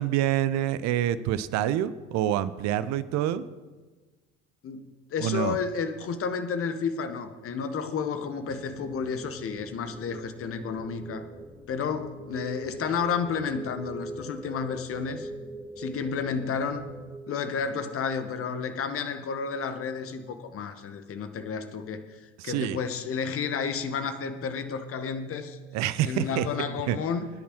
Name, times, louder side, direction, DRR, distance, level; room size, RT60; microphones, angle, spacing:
voice 1, 0.0-3.5 5.2-5.6 22.4-22.8 25.7-26.5 26.9-27.0, right 12 dB, 55° right, 16 dB, 0.7 m, -27 dB
voice 2, 4.6-11.3 11.7-15.3 15.8-16.8 17.3-25.6 26.0-27.3, left 6 dB, 40° left, 8 dB, 1.3 m, -31 dB
sound 1, 8.5-17.2, right 1 dB, ahead, 1.1 m, -43 dB
20.5 x 10.0 x 3.1 m, 1.3 s
figure-of-eight pair, 55°, 33 cm